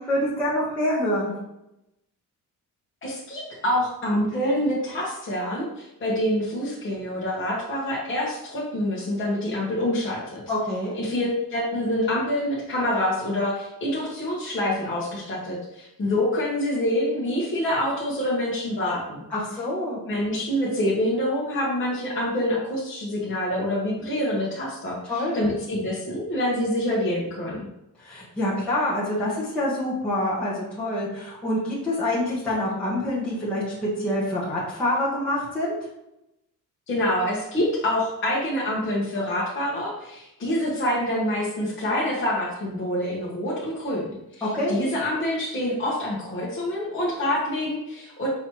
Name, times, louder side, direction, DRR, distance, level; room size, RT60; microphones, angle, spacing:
voice 1, 0.0-1.3 10.5-11.0 19.3-20.0 25.1-25.5 28.0-35.7 44.4-44.8, left 1 dB, 5° left, -10 dB, 1.1 m, -26 dB
voice 2, 3.0-10.4 10.9-19.2 20.1-27.7 36.9-48.3, left 1 dB, 35° left, -6 dB, 1.1 m, -26 dB
5.6 x 3.1 x 3.0 m, 0.89 s
cardioid pair, 145°, 34 cm